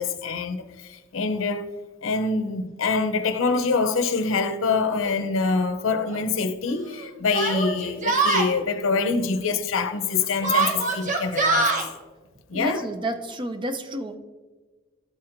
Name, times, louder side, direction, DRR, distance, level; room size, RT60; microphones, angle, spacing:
voice 1, 0.0-1.6 2.0-11.9 12.5-12.8, left 4 dB, 90° left, 0.6 m, -25 dB
Yell, 5.0-5.1 6.1-6.2 7.3-8.5 10.4-11.9, right 3 dB, 40° right, 0.9 m, -23 dB
voice 2, 12.5-14.2, right 1 dB, 25° right, 0.5 m, -30 dB
12.0 x 4.3 x 2.5 m
head